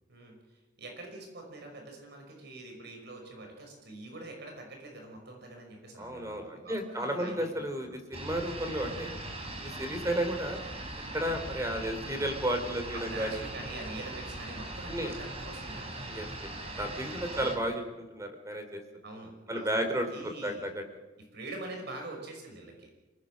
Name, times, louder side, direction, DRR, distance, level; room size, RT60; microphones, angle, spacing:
voice 1, 0.1-8.0 12.9-16.1 17.4-17.7 19.0-20.7 21.3-22.9, right 2 dB, 65° right, 2 dB, 5.5 m, -45 dB
voice 2, 6.0-9.1 9.6-10.6 11.1-13.4 14.8-15.1 16.1-16.5 16.8-18.8 19.5-20.1 20.4-20.8, right 1 dB, 15° right, 6 dB, 3.5 m, -33 dB
sound 1, 8.1-17.6, right 1 dB, 35° right, 4.6 m, -40 dB
27.5 x 19.0 x 6.4 m, 1.1 s
head